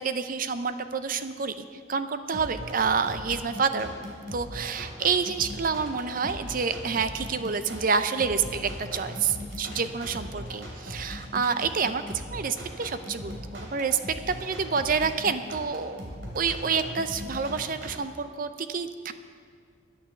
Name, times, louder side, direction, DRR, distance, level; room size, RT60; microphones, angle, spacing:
voice 1, 0.0-3.9 4.3-12.0 12.3-14.0 14.3-19.1, right 5 dB, 45° right, 10 dB, 0.6 m, -28 dB
sound 1, 2.3-17.9, equal, 70° right, 2.9 m, -39 dB
sound 2, 5.9-10.6 10.9-12.6, left 2 dB, 85° left, 1.8 m, -51 dB
12.0 x 9.2 x 6.7 m, 2.2 s
head